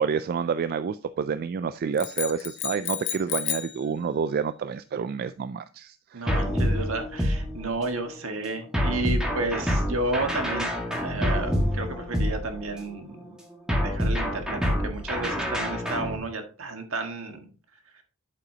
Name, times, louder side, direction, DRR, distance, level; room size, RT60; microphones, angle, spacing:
voice 1, 0.0-6.3, right 6 dB, 45° right, 13 dB, 0.3 m, -28 dB
sound 1, 2.0-3.8, left 11 dB, 55° left, 0.7 m, -32 dB
voice 2, 6.1-10.7 11.0-13.3 13.8-17.5, right 2 dB, 70° right, 5 dB, 1.6 m, -32 dB
sound 2, 6.3-8.0 8.7-12.9 13.7-16.2, equal, 5° right, 1.7 m, -27 dB
8.2 x 8.1 x 2.8 m, 0.38 s
head